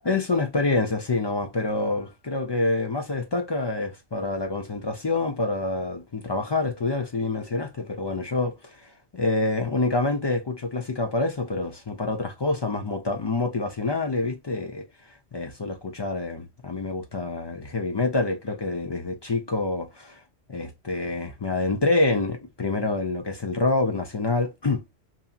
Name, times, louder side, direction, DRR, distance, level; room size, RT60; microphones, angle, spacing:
voice 1, 0.1-8.9 9.1-14.8 15.3-20.2 20.5-24.8, left 3 dB, 45° left, 0.3 m, -27 dB
2.7 x 2.7 x 2.2 m
omnidirectional pair, 1.2 m